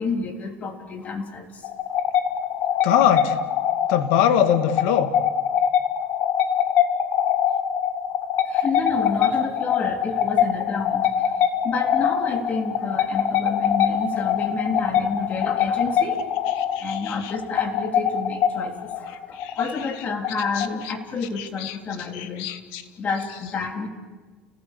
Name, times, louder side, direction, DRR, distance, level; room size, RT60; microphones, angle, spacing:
voice 1, 0.0-1.7 8.5-16.2 16.8-22.5 23.0-23.9, left 4 dB, 35° left, 4 dB, 3.6 m, -29 dB
sound 1, 1.6-21.0, left 8 dB, 55° left, 1.8 m, -24 dB
voice 2, 2.8-3.4 3.9-5.2 16.8-17.3 19.4-19.6 20.6-20.7 21.4-21.8 22.1-22.8, left 10 dB, 80° left, 9 dB, 2.0 m, -22 dB
30.0 x 19.0 x 8.5 m, 1.3 s
cardioid pair, 120°, 4 cm